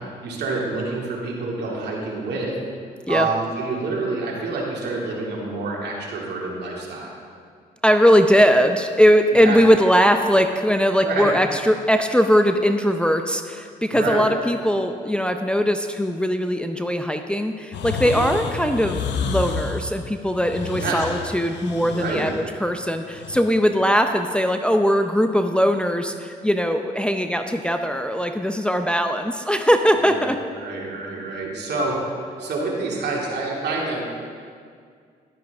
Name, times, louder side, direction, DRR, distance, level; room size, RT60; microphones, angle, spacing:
voice 1, 0.0-2.6 3.1-7.1 9.3-9.6 11.0-11.4 13.9-14.3 18.0-18.3 20.7-21.0 21.9-22.3 30.2-34.1, right 3 dB, 65° right, -2 dB, 2.4 m, -28 dB
voice 2, 7.8-22.3 22.6-30.4, equal, 5° left, 6 dB, 0.6 m, -20 dB
sound 1, 17.7-23.4, left 5 dB, 75° left, 0.8 m, -30 dB
11.0 x 10.5 x 3.5 m, 2.1 s
supercardioid pair, 60°, 18 cm